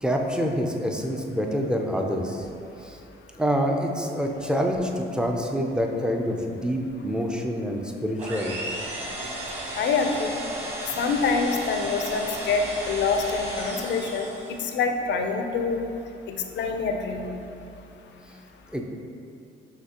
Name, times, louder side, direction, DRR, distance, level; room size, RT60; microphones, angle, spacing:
voice 1, 0.0-2.5 2.8-3.0 3.4-8.5 18.7-18.8, equal, 5° right, 1 dB, 0.4 m, -26 dB
sound 1, 8.2-14.7, right 1 dB, 30° right, 1.2 m, -34 dB
voice 2, 9.8-10.4 10.8-15.9 16.3-17.3, left 4 dB, 65° left, 4 dB, 0.5 m, -26 dB
5.8 x 2.8 x 2.8 m, 2.7 s
cardioid pair, 90°, 20 cm